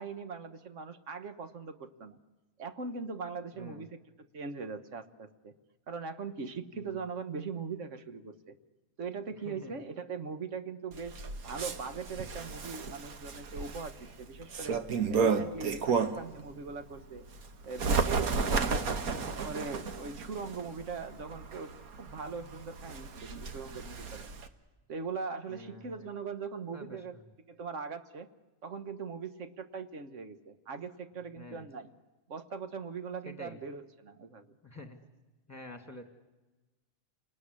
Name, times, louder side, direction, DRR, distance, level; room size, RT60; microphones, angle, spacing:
voice 1, 0.0-2.2 2.6-5.5 5.9-8.6 9.0-11.1 11.4-14.8 15.1-17.3 17.6-19.0 19.2-24.3 24.9-27.2 27.5-28.3 28.6-31.9 32.3-34.6, right 5 dB, 60° right, 9 dB, 1.6 m, -41 dB
Bird, 10.9-16.4 16.8-24.5, right 5 dB, 85° right, 1.7 m, -33 dB
voice 2, 18.7-19.3 25.5-26.1 26.7-27.0 31.3-31.7 33.2-33.6 34.6-35.0 35.5-36.0, left 1 dB, 10° left, 5 dB, 2.2 m, -48 dB
29.5 x 20.0 x 9.9 m, 1.2 s
omnidirectional pair, 1.5 m